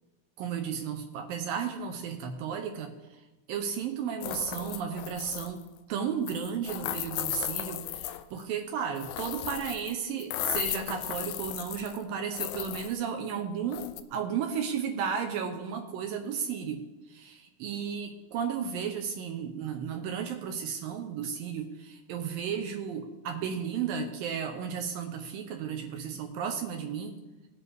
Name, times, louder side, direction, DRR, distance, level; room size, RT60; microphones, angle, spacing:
voice 1, 0.4-3.2 3.5-27.2, right 7 dB, 75° right, 4 dB, 2.3 m, -34 dB
sound 1, 4.2-5.6 6.3-8.4 9.0-9.9 10.2-12.0 12.3-12.9 13.7-14.0, left 13 dB, 80° left, 2.3 m, -35 dB
18.5 x 9.0 x 3.4 m, 1.1 s
omnidirectional pair, 4.6 m